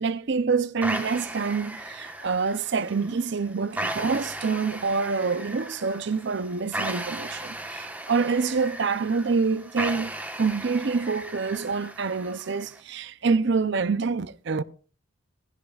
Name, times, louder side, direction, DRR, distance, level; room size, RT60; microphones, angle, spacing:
voice 1, 0.0-10.1 10.4-14.6, right 4 dB, 55° right, 0.5 m, -26 dB
sound 1, 0.8-12.8, right 1 dB, 5° right, 1.1 m, -36 dB
16.0 x 15.5 x 2.4 m
head